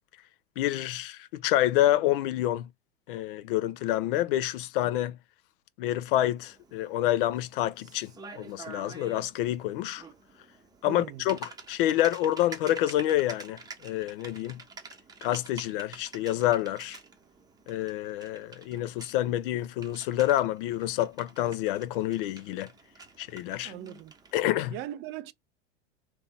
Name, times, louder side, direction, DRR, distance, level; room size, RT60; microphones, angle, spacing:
voice 1, 0.6-2.7 3.1-5.2 5.8-10.0 10.8-14.6 15.2-17.0 17.7-22.7 23.2-23.7 24.3-24.8, left 13 dB, 50° left, 0.6 m, -28 dB
Typing, 6.4-24.4, right 4 dB, 10° right, 0.8 m, -48 dB
voice 2, 10.9-11.2 23.6-24.1 24.7-25.3, right 13 dB, 30° right, 0.5 m, -39 dB
3.4 x 2.9 x 4.1 m
figure-of-eight pair, 90°, 34 cm